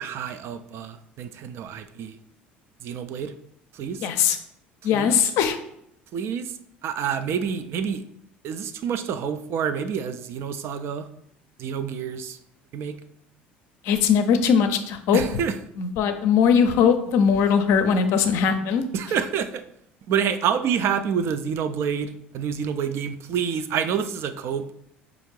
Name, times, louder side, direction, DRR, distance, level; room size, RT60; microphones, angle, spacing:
voice 1, 0.0-2.2 2.8-3.3 3.7-4.1 4.9-5.2 6.1-6.5 6.8-8.0 8.4-11.1 11.6-12.4 12.7-13.0 15.1-15.6 18.9-19.6 20.1-24.6, right 7 dB, 50° right, 10 dB, 0.3 m, -28 dB
voice 2, 4.0-4.4 4.8-5.6 13.8-15.2 15.8-18.8, left 7 dB, 60° left, 8 dB, 0.5 m, -20 dB
4.9 x 2.5 x 3.1 m, 0.74 s
figure-of-eight pair, 65°, 5 cm